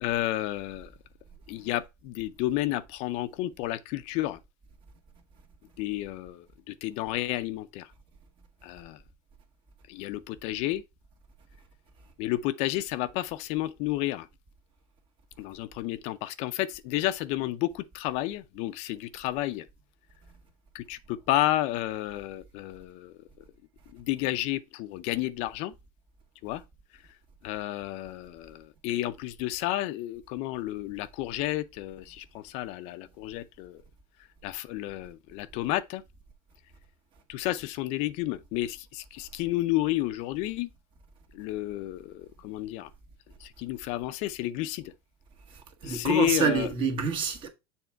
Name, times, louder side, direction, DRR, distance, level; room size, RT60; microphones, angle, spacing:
voice 1, 0.0-0.9 1.5-4.4 5.8-7.9 8.6-9.0 9.9-10.8 12.2-14.3 15.4-19.7 20.7-23.2 23.9-25.7 26.4-26.6 27.4-33.8 34.4-36.0 37.3-40.7 41.3-42.9 43.4-44.9 45.8-46.7, left 15 dB, 55° left, 0.5 m, -31 dB
voice 2, 45.8-47.5, right 6 dB, 40° right, 1.6 m, -27 dB
7.0 x 3.6 x 4.3 m
supercardioid pair, 135°, 13 cm